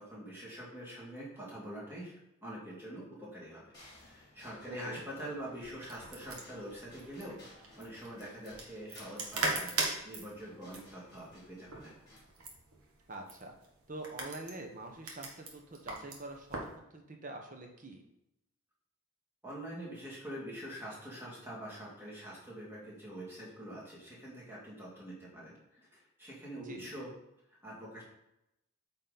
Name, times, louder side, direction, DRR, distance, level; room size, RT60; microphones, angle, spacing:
voice 1, 0.0-2.2 2.4-3.6 4.0-7.4 7.7-9.8 10.0-11.9 19.4-27.1 27.6-28.0, right 1 dB, 10° right, -6 dB, 2.1 m, -45 dB
sound 1, 3.7-12.2, left 1 dB, 20° left, 2.8 m, -59 dB
voice 2, 4.7-5.0 13.1-13.5 13.9-16.6 16.9-18.0 26.6-26.9, right 2 dB, 35° right, 3 dB, 1.0 m, -45 dB
sound 2, 5.6-16.8, right 3 dB, 85° right, 1.5 m, -40 dB
8.5 x 4.0 x 4.0 m, 0.84 s
head